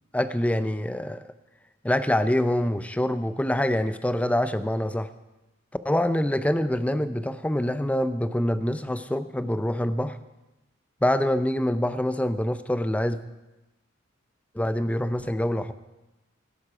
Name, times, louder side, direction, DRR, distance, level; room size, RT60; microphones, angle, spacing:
voice 1, 0.1-1.3 1.8-5.1 5.8-10.2 11.0-13.2 14.5-15.7, left 1 dB, 5° left, 12 dB, 0.5 m, -25 dB
17.0 x 11.0 x 5.0 m, 1.1 s
head